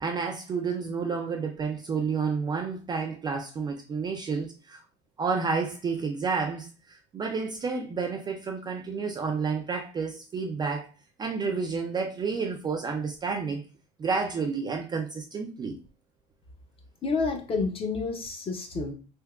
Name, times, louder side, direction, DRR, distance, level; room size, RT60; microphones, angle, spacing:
voice 1, 0.0-4.8 5.2-6.7 7.1-10.9 11.2-13.6 14.0-15.8, right 5 dB, 20° right, 2 dB, 0.3 m, -30 dB
voice 2, 17.0-18.9, left 4 dB, 30° left, 4 dB, 0.6 m, -29 dB
3.4 x 2.8 x 2.3 m, 0.33 s
cardioid pair, 135°, 19 cm